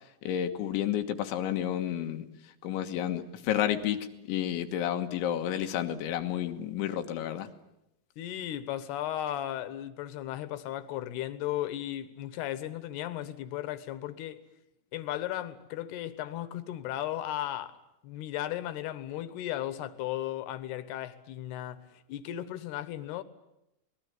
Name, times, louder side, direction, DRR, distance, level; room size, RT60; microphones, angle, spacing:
voice 1, 0.2-2.3 2.6-7.5, left 11 dB, 90° left, 3.8 m, -31 dB
voice 2, 8.2-14.4 14.9-17.8 18.0-21.8 22.1-23.2, left 13 dB, 70° left, 3.0 m, -35 dB
26.0 x 20.0 x 9.5 m
omnidirectional pair, 5.2 m